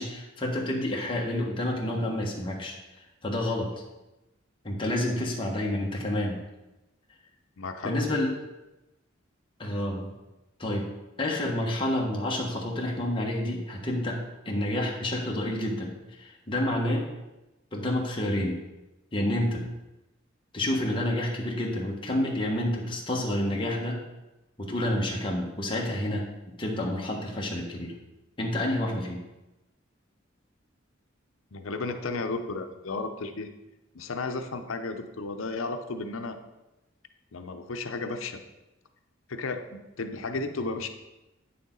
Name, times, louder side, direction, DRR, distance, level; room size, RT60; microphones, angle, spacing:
voice 1, 0.0-2.7 3.2-3.7 4.6-6.4 7.8-8.3 9.6-10.1 10.6-10.9 11.2-17.0 17.7-18.6 19.1-19.6 20.5-24.0 24.6-26.3 26.6-27.9 28.4-29.2, left 1 dB, 25° left, -2 dB, 1.4 m, -29 dB
voice 2, 7.6-8.1 31.5-33.5 33.9-36.4 37.3-38.4 39.3-40.9, left 3 dB, 80° left, 7 dB, 0.7 m, -33 dB
9.1 x 6.8 x 3.9 m, 1.0 s
head